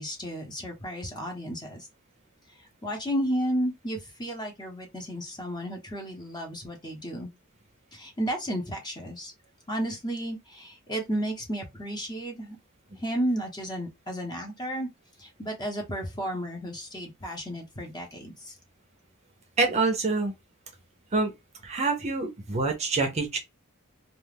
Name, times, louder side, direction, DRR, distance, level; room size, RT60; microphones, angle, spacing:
voice 1, 0.0-1.9 2.8-7.3 7.9-9.3 9.7-12.6 12.9-14.9 15.2-18.5, equal, 20° left, 0.9 m, -33 dB
voice 2, 19.6-20.3 21.1-21.3 21.6-23.4, right 3 dB, 30° right, 0.6 m, -26 dB
2.4 x 2.3 x 3.4 m
head